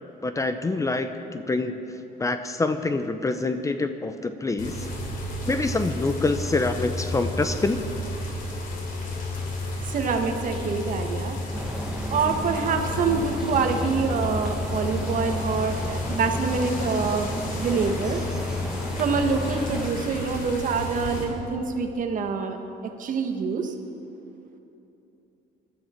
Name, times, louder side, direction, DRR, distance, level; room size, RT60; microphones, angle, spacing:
voice 1, 0.2-1.8 2.2-4.8 5.5-7.8, left 3 dB, 20° left, 9 dB, 0.7 m, -26 dB
sound 1, 4.6-21.2, left 2 dB, 55° left, 3.1 m, -31 dB
voice 2, 9.9-11.4 12.1-17.3 17.6-18.2 19.0-22.6 23.0-23.7, right 5 dB, 50° right, 5 dB, 1.5 m, -26 dB
sound 2, 11.5-19.9, right 1 dB, 5° right, 1.2 m, -35 dB
20.0 x 12.5 x 4.5 m, 2.9 s
cardioid pair, 110°, 17 cm